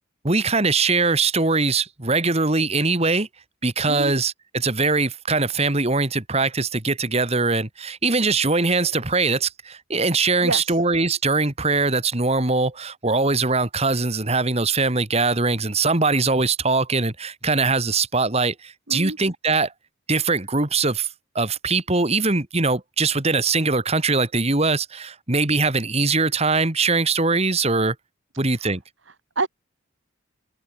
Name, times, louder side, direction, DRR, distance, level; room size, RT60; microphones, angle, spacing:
voice 1, 0.2-3.3 3.6-19.7 20.1-21.1 21.4-28.0 28.4-28.8, right 3 dB, 30° right, 1.9 m, -22 dB
voice 2, 10.4-10.8 18.9-19.2 28.5-28.7 29.1-29.5, right 3 dB, 65° right, 2.9 m, -28 dB
head